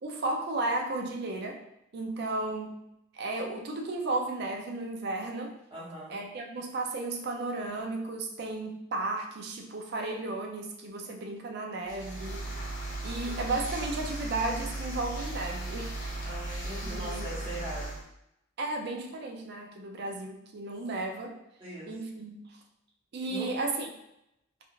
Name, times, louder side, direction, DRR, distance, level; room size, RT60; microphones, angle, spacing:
voice 1, 0.0-1.6 1.9-2.8 3.1-5.6 6.1-12.8 13.0-16.0 16.8-17.3 18.6-21.4 21.9-22.6 23.1-23.9, right 2 dB, 55° right, 2 dB, 0.4 m, -34 dB
voice 2, 5.7-6.2 16.2-17.9 21.6-21.9 23.3-23.5, right 1 dB, 25° right, -7 dB, 1.0 m, -40 dB
sound 1, 11.9-18.0, right 2 dB, 40° left, 0.8 m, -36 dB
3.5 x 2.3 x 2.4 m, 0.82 s
head